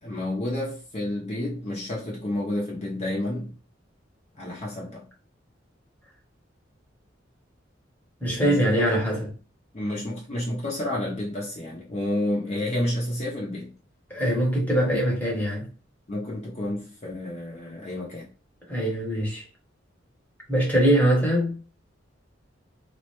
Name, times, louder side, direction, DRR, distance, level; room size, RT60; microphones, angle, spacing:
voice 1, 0.0-3.5 4.3-5.0 8.4-9.1 9.7-13.7 16.1-18.3, left 1 dB, 35° left, 0.6 m, -30 dB
voice 2, 8.2-9.3 14.1-15.7 18.7-19.4 20.5-21.6, right 1 dB, 10° left, 0.9 m, -22 dB
2.4 x 2.1 x 2.9 m
head